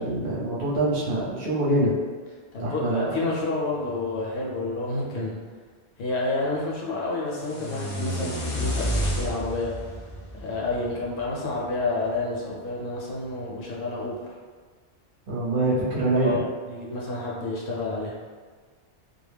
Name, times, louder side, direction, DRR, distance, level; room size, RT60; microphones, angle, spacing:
voice 1, 0.0-1.9 2.6-3.1 15.3-16.4, right 2 dB, 55° right, -8 dB, 0.8 m, -24 dB
voice 2, 2.5-5.4 6.0-9.7 10.3-14.3 16.2-18.2, left 2 dB, 75° left, -4 dB, 0.9 m, -29 dB
dirty whee effect, 7.3-11.4, equal, 45° left, 0.4 m, -30 dB
2.3 x 2.0 x 3.2 m, 1.5 s
omnidirectional pair, 1.2 m